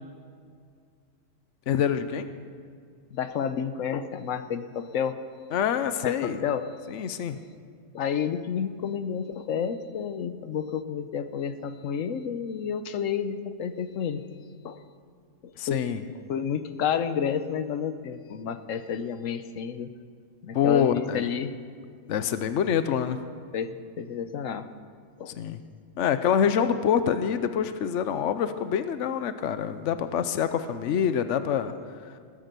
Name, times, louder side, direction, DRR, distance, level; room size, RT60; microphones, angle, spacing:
voice 1, 1.7-2.3 5.5-6.4 6.9-7.4 15.6-16.0 20.5-21.2 22.1-23.2 25.3-25.6 26.0-31.7 32.1-32.2, left 8 dB, 70° left, 11 dB, 1.1 m, -26 dB
voice 2, 3.1-5.2 6.0-6.7 7.9-14.2 14.6-14.8 15.4-15.8 16.3-19.9 20.4-21.5 23.5-24.7 25.2-25.3, left 7 dB, 90° left, 10 dB, 1.1 m, -30 dB
19.5 x 9.9 x 6.8 m, 2.1 s
omnidirectional pair, 1.3 m